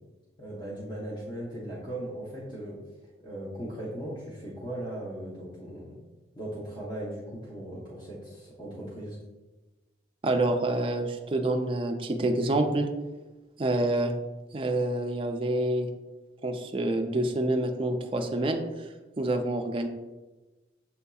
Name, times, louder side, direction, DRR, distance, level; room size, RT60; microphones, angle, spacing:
voice 1, 0.4-2.8 3.2-6.0 6.3-9.2, right 1 dB, 25° left, -7 dB, 0.7 m, -38 dB
voice 2, 10.2-12.9 13.6-14.2 14.5-15.9 16.4-18.9 19.2-19.9, right 2 dB, 30° right, 5 dB, 0.3 m, -27 dB
6.9 x 2.6 x 2.3 m, 1.2 s
head